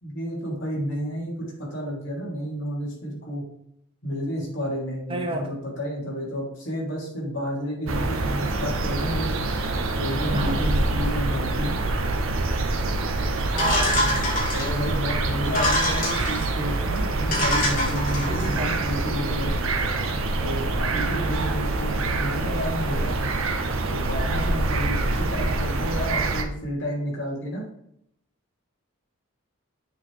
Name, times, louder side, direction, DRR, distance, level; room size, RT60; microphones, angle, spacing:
voice 1, 0.0-3.4 4.0-9.3 10.0-11.7 14.5-19.6 20.4-23.1 23.9-27.6, equal, 65° left, -4 dB, 3.1 m, -31 dB
voice 2, 5.1-5.5 10.3-10.6 13.5-14.1 18.3-18.8, right 1 dB, 25° right, 4 dB, 0.8 m, -31 dB
sound 1, 7.9-26.4, right 2 dB, 85° right, 0.9 m, -26 dB
sound 2, 13.6-14.9 15.4-16.5 17.0-17.1 17.3-18.5, left 1 dB, 40° left, 2.4 m, -25 dB
7.5 x 4.0 x 4.8 m, 0.72 s
head